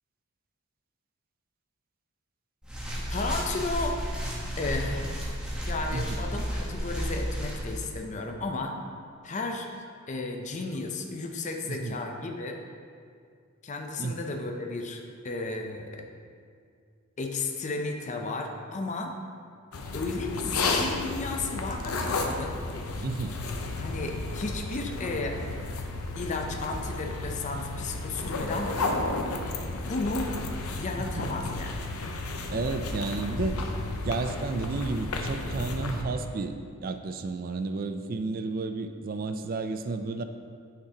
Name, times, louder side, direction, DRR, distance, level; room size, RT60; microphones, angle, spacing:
sound 1, 2.6-7.8, equal, 5° right, 1.1 m, -32 dB
voice 1, 3.1-4.0 4.6-5.2 5.7-8.8 9.2-9.7 10.1-12.6 13.6-16.0 17.2-19.1 19.9-22.6 23.8-25.4 26.1-28.8 29.8-30.3 30.8-31.8, left 3 dB, 35° left, 3 dB, 0.5 m, -33 dB
sound 2, 19.7-36.0, left 2 dB, 85° left, 0.7 m, -32 dB
voice 2, 23.0-23.4 31.2-31.3 32.5-33.6 34.0-36.6 36.8-40.2, right 3 dB, 40° right, 8 dB, 0.3 m, -32 dB
9.5 x 5.9 x 2.9 m, 2.2 s
head